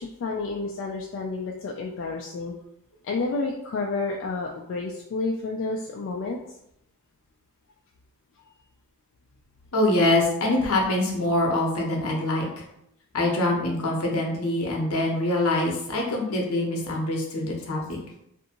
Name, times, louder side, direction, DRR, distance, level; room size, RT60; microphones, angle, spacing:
voice 1, 0.0-2.5 3.0-6.4, left 3 dB, 55° left, -1 dB, 0.3 m, -30 dB
voice 2, 9.7-12.5 13.1-18.0, left 1 dB, 75° left, 0 dB, 0.8 m, -24 dB
2.6 x 2.6 x 2.8 m, 0.79 s
head